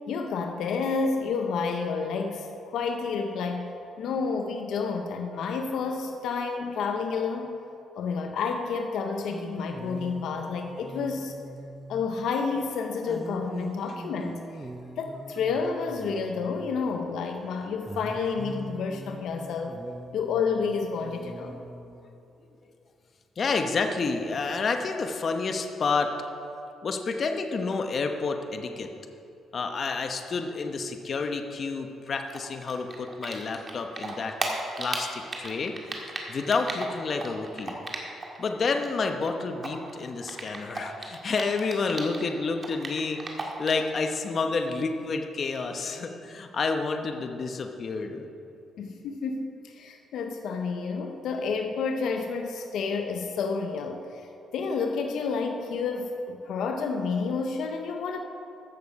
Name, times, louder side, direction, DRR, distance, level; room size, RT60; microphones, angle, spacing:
voice 1, 0.0-3.7 4.0-7.6 7.9-11.3 11.9-14.4 15.0-19.8 20.1-21.6 48.8-54.3 54.5-58.2, left 5 dB, 75° left, 5 dB, 0.8 m, -30 dB
sound 1, 9.3-12.3 13.1-17.0 17.8-22.3 24.4-24.5, right 2 dB, 15° right, 0.6 m, -43 dB
voice 2, 23.4-26.1 26.8-28.9 29.5-34.3 34.8-35.7 36.3-37.8 38.4-48.3, left 4 dB, 45° left, 5 dB, 0.9 m, -29 dB
Typing, 32.3-33.7 34.0-38.4 38.7-42.3 42.6-43.9, right 3 dB, 35° right, 1.8 m, -35 dB
14.5 x 6.5 x 5.3 m, 2.7 s
cardioid pair, 90°, 0 cm